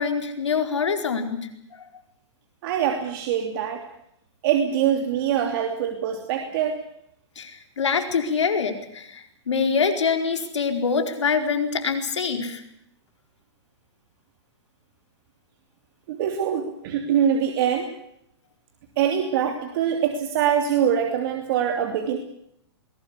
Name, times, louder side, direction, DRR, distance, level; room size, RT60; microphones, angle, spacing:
voice 1, 0.0-1.5 7.4-12.6, left 5 dB, 90° left, 6 dB, 4.5 m, -25 dB
voice 2, 2.6-3.8 4.4-6.8 16.1-17.9 19.0-22.2, right 9 dB, 50° right, 4 dB, 3.1 m, -23 dB
21.5 x 18.0 x 8.4 m, 0.75 s
hypercardioid pair, 135°, 15 cm